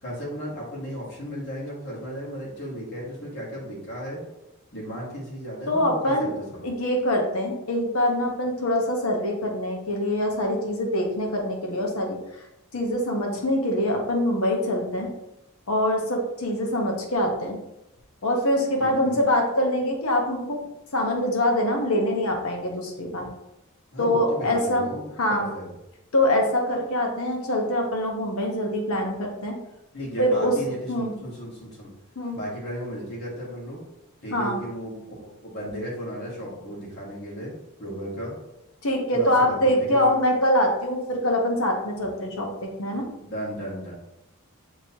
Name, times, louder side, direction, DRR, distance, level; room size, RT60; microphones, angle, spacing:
voice 1, 0.0-4.2 4.7-6.6 18.8-19.2 23.9-25.7 29.9-31.9 32.3-33.8 34.2-37.5 37.8-38.3 39.1-40.2 43.2-43.9, equal, 50° left, -6 dB, 1.6 m, -35 dB
voice 2, 5.7-6.3 6.6-12.4 12.7-15.1 15.7-17.6 18.2-20.6 20.9-23.3 24.0-24.9 25.2-25.5 26.1-29.6 30.2-30.6 30.9-31.1 32.2-32.4 34.3-34.6 38.8-43.1, left 1 dB, 75° left, 1 dB, 1.0 m, -24 dB
6.2 x 3.0 x 2.9 m, 0.89 s
head